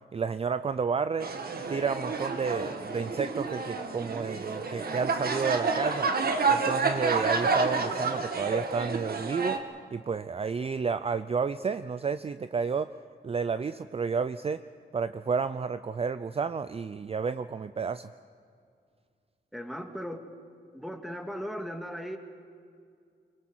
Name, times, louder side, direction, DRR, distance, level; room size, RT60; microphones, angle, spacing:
voice 1, 0.1-1.3 1.7-6.1 6.5-9.6 9.9-12.9 13.2-14.6 14.9-18.1, right 5 dB, 35° right, 12 dB, 0.5 m, -31 dB
sound 1, 1.2-9.6, right 4 dB, 55° right, 1.7 m, -29 dB
voice 2, 19.5-20.3 20.7-22.2, equal, ahead, 4 dB, 2.1 m, -37 dB
25.5 x 23.0 x 6.3 m, 2.3 s
wide cardioid pair, 115°, 18 cm